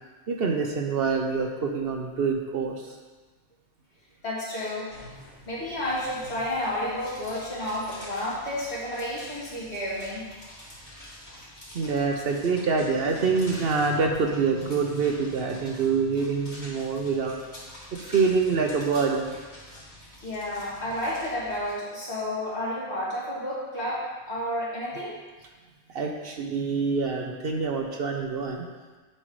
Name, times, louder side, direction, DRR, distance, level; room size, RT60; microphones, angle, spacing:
voice 1, 0.3-3.0 11.7-17.4 17.9-19.3 25.9-28.7, right 4 dB, 60° right, 2 dB, 0.9 m, -26 dB
voice 2, 4.2-4.9 5.5-10.3 20.2-25.2, left 1 dB, 65° left, -9 dB, 2.7 m, -31 dB
sound 1, 4.9-21.7, left 1 dB, 40° left, 2.5 m, -47 dB
9.9 x 5.4 x 3.1 m, 1.3 s
omnidirectional pair, 1.2 m